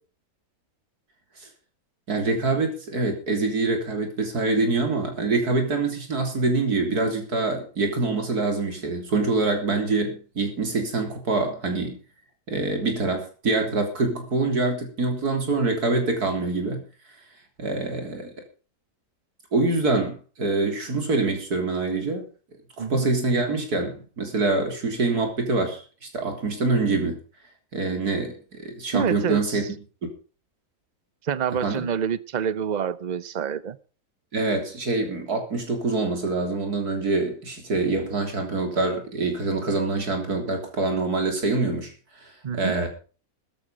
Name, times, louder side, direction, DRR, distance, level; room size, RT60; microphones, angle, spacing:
voice 1, 2.1-12.0 12.5-16.8 17.6-18.3 19.5-22.3 22.8-25.8 26.1-27.2 27.7-29.6 30.0-30.1 31.6-31.9 34.3-41.9 42.2-42.9, right 3 dB, 80° right, 4 dB, 3.9 m, -25 dB
voice 2, 28.9-29.6 31.2-33.8 42.4-42.8, right 7 dB, 40° right, 17 dB, 0.7 m, -27 dB
13.5 x 12.0 x 5.2 m, 0.37 s
omnidirectional pair, 1.6 m